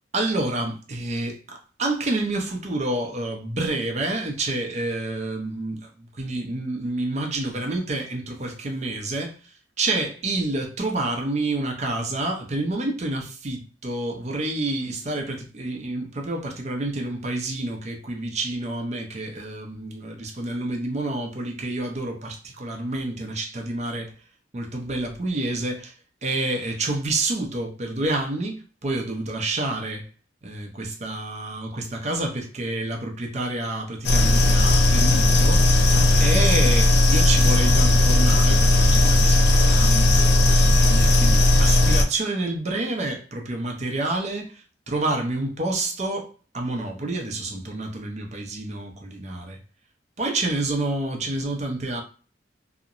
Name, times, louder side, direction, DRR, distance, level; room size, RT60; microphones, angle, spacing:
voice 1, 0.1-24.1 24.5-25.9 26.2-30.1 30.4-35.9 36.2-49.6 50.2-52.0, right 2 dB, 40° right, 0.5 m, -28 dB
sound 1, 34.0-42.0, left 1 dB, 60° left, 0.4 m, -17 dB
2.8 x 2.1 x 2.4 m
head